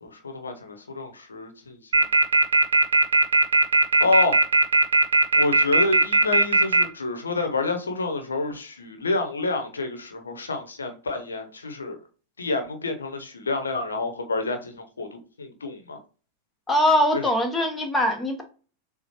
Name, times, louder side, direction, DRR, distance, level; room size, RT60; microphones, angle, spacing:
voice 1, 0.0-2.1 4.0-4.4 5.4-12.0 12.4-16.0 17.1-17.2, left 3 dB, 75° left, 1.0 m, -28 dB
sound 1, 1.9-6.8, right 3 dB, 70° right, 0.7 m, -17 dB
voice 2, 16.7-18.4, left 1 dB, 10° left, 1.2 m, -22 dB
6.9 x 2.4 x 3.0 m
figure-of-eight pair, 90°, 0 cm